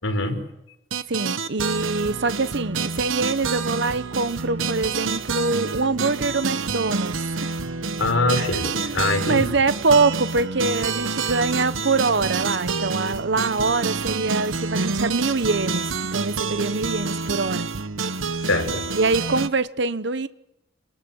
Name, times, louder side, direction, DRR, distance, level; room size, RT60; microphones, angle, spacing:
voice 1, 0.0-0.4 8.0-9.5 18.4-18.8, left 2 dB, 85° left, 5.3 m, -23 dB
sound 1, 0.9-19.5, right 4 dB, 80° right, 1.0 m, -28 dB
voice 2, 1.1-7.1 7.4-7.5 8.4-17.7 18.9-20.3, right 3 dB, 60° right, 0.9 m, -24 dB
29.5 x 20.0 x 7.1 m
head